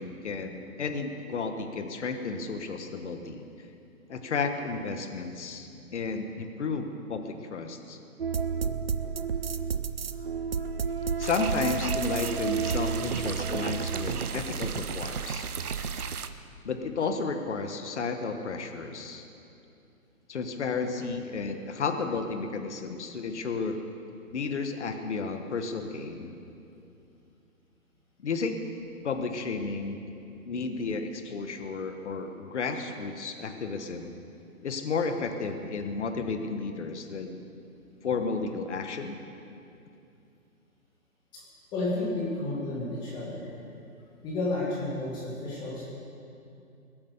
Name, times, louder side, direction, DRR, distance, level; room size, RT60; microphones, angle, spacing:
voice 1, 0.0-3.5 4.1-8.0 11.2-15.4 16.6-19.3 20.3-23.8 24.3-26.3 28.2-28.6 29.0-30.0 30.5-34.1 34.6-37.4 38.0-39.2, left 4 dB, 50° left, 6 dB, 1.4 m, -32 dB
sound 1, 8.2-16.2, right 6 dB, 45° right, 0.5 m, -31 dB
sound 2, 11.2-16.3, right 7 dB, 85° right, 1.0 m, -38 dB
voice 2, 41.7-43.4 44.2-45.8, left 2 dB, 10° left, -5 dB, 1.9 m, -31 dB
21.0 x 8.7 x 6.8 m, 2.7 s
hypercardioid pair, 165°, 43 cm